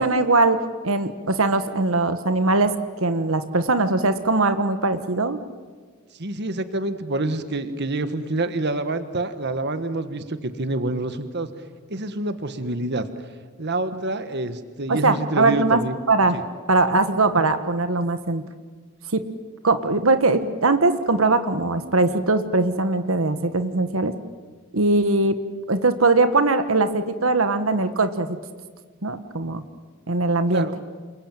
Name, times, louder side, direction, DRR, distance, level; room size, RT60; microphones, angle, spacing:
voice 1, 0.0-2.7 3.0-5.4 14.9-15.8 16.1-16.4 16.7-18.4 19.1-19.2 19.6-24.1 24.7-25.4 25.7-28.4 29.0-29.6 30.1-30.7, right 3 dB, 85° right, 10 dB, 1.5 m, -21 dB
voice 2, 6.2-11.5 11.9-13.1 13.6-16.0 16.3-16.4 30.5-30.8, right 2 dB, 55° right, 10 dB, 1.5 m, -27 dB
28.5 x 22.5 x 9.1 m, 1.5 s
head